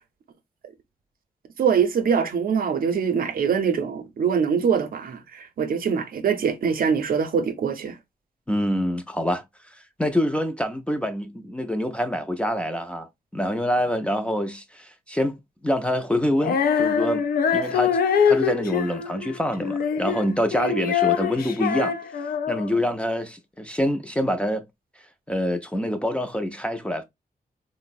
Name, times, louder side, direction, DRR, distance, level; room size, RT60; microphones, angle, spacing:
voice 1, 1.6-8.0, right 6 dB, 70° right, 0.6 m, -23 dB
voice 2, 8.5-9.4 10.0-15.4 15.6-17.2 17.5-18.0 18.3-21.9 22.5-24.6 25.3-27.0, equal, 5° left, 0.4 m, -26 dB
Female singing, 16.4-22.8, left 7 dB, 80° left, 0.4 m, -24 dB
3.8 x 2.0 x 2.4 m
wide cardioid pair, 155°, 15 cm